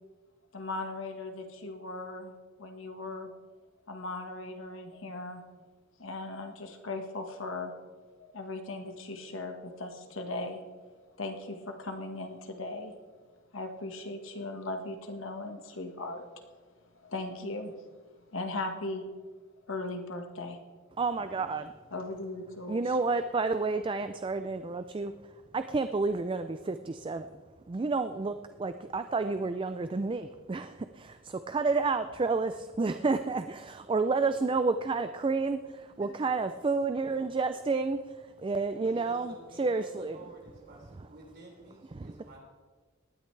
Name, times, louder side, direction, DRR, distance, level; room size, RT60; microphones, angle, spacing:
voice 1, 0.5-2.3 2.6-3.3 3.9-5.4 6.0-7.7 8.2-10.6 11.2-12.9 13.5-16.6 16.9-17.8 18.3-19.0 19.7-20.6 21.9-23.0, left 2 dB, 70° left, 4 dB, 1.5 m, -38 dB
voice 2, 21.0-21.7 22.7-25.1 25.5-27.3 27.7-38.0 38.4-39.3 39.6-40.2 41.9-42.1, right 3 dB, 25° right, 10 dB, 0.4 m, -30 dB
voice 3, 38.8-42.4, right 2 dB, 55° right, -3 dB, 5.1 m, -51 dB
18.5 x 12.5 x 3.3 m, 1.4 s
head